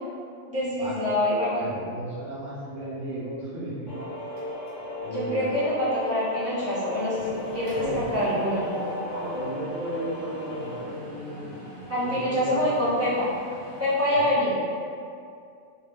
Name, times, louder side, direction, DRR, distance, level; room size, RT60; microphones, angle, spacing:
voice 1, 0.5-1.7 5.1-8.7 11.9-13.3 13.8-14.6, left 1 dB, 10° right, -12 dB, 1.2 m, -25 dB
voice 2, 1.6-3.9 5.0-5.6 7.7-8.7 9.1-11.6 12.0-12.6 14.1-14.3, right 1 dB, 60° right, -14 dB, 1.3 m, -35 dB
sound 1, 3.9-10.8, left 1 dB, 65° left, 1.0 m, -36 dB
Mechanisms, 4.4-5.0 5.3-5.5 5.8-13.9, right 1 dB, 80° right, 1.4 m, -42 dB
3.0 x 2.9 x 3.5 m, 2.4 s
omnidirectional pair, 1.4 m